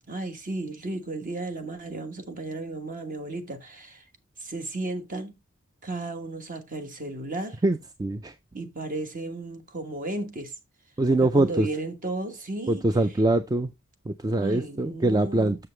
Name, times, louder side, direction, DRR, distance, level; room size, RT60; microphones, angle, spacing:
voice 1, 0.0-4.0 4.4-5.3 5.8-7.6 8.5-10.5 11.2-12.8 14.4-15.5, right 2 dB, 40° right, 1.3 m, -34 dB
voice 2, 7.6-8.4 11.0-11.7 12.7-13.7 14.1-15.7, right 2 dB, 15° right, 0.3 m, -23 dB
6.8 x 6.7 x 3.1 m
head